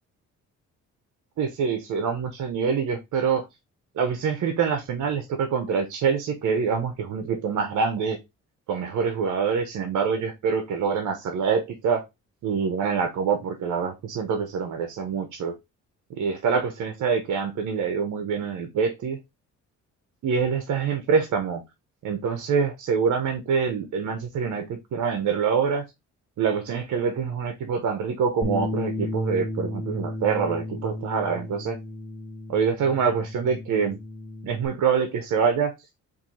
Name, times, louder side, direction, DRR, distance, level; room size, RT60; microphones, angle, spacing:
voice 1, 1.4-3.4 4.0-8.2 8.7-12.0 12.4-15.6 16.2-19.2 20.2-21.6 22.0-25.8 26.4-31.8 32.5-34.0 34.4-35.7, right 6 dB, 70° right, 0.9 m, -25 dB
Bass guitar, 28.4-34.7, left 2 dB, 5° left, 2.3 m, -33 dB
4.5 x 2.7 x 4.0 m
cardioid pair, 90°, 30 cm